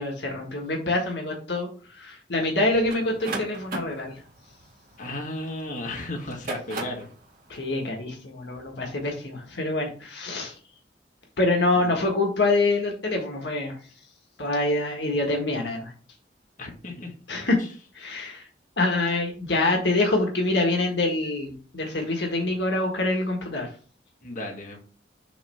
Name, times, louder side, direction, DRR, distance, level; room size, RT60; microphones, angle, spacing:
voice 1, 0.0-4.2 7.5-10.6 11.4-13.8 14.4-15.9 17.3-17.6 17.9-18.5 18.8-23.7, left 2 dB, 75° left, 1 dB, 1.5 m, -25 dB
sound 1, 2.9-5.6 6.2-7.1, right 2 dB, 55° right, 1.8 m, -35 dB
voice 2, 5.0-7.1 11.7-12.0 16.6-17.1 24.2-24.8, left 1 dB, 45° left, 0 dB, 1.7 m, -34 dB
7.0 x 3.1 x 5.6 m, 0.40 s
head